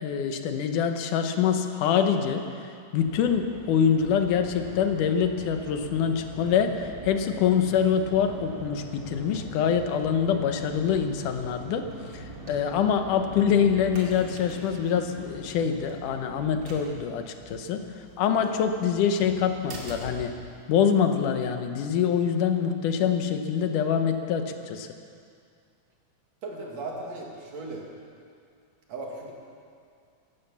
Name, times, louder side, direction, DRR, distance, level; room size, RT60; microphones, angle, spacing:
voice 1, 0.0-11.9 12.1-17.8 18.2-20.3 20.7-24.9, left 7 dB, 85° left, 7 dB, 2.5 m, -25 dB
sound 1, 3.0-21.0, right 2 dB, 40° right, 2.5 m, -43 dB
voice 2, 26.4-27.9 28.9-29.3, right 2 dB, 60° right, -1 dB, 3.1 m, -37 dB
16.0 x 12.0 x 7.1 m, 2.3 s
omnidirectional pair, 3.6 m